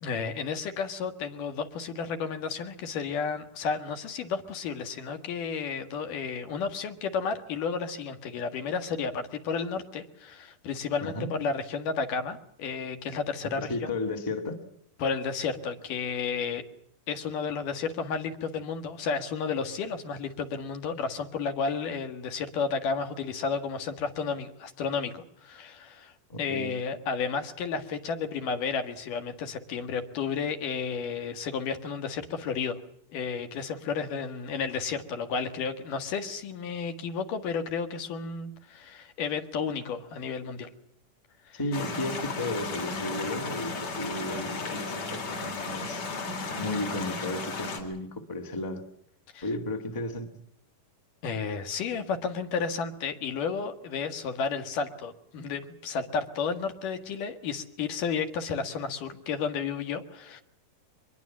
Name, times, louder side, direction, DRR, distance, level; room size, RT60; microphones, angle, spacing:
voice 1, 0.0-13.7 15.0-16.6 17.1-26.1 26.4-32.8 33.1-40.7 41.5-41.6 49.3-49.4 51.2-60.4, left 5 dB, 65° left, 7 dB, 3.2 m, -32 dB
voice 2, 13.6-14.6 26.3-26.7 41.5-46.1 46.6-48.8 49.4-50.3, left 2 dB, 10° left, 5 dB, 1.3 m, -34 dB
sound 1, 41.7-47.8, left 3 dB, 50° left, 4.8 m, -34 dB
24.0 x 22.0 x 7.3 m, 0.70 s
omnidirectional pair, 4.1 m